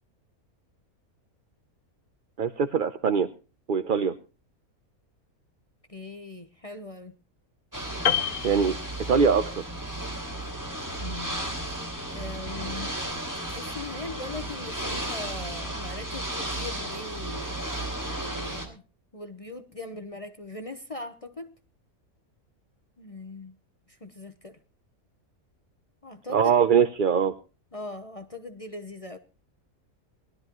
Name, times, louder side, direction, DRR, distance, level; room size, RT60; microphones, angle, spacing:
voice 1, 2.4-3.3 3.7-4.1 8.4-9.6 26.3-27.3, right 6 dB, 45° right, 0.7 m, -22 dB
voice 2, 5.9-7.1 11.0-11.4 12.1-12.9 13.5-17.6 18.1-18.8 19.1-21.5 23.0-23.5 23.9-24.6 26.0-26.6 27.7-29.2, left 2 dB, 30° left, 0.9 m, -40 dB
Ocean / Boat Water vehicle, 7.7-18.7, right 1 dB, 10° right, 3.4 m, -34 dB
Piano, 8.1-9.5 9.8-10.0, left 9 dB, 75° left, 1.4 m, -28 dB
20.5 x 12.5 x 3.0 m
omnidirectional pair, 1.5 m